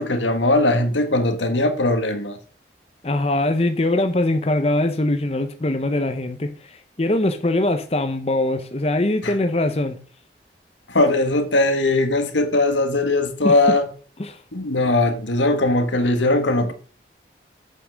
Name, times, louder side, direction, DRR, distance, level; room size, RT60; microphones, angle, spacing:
voice 1, 0.0-2.4 9.2-9.3 10.9-13.9 14.5-16.7, left 2 dB, 90° left, 1.6 m, -20 dB
voice 2, 3.0-10.0 13.4-13.5 14.2-14.4, left 1 dB, 35° left, 0.8 m, -22 dB
8.4 x 5.7 x 6.3 m
head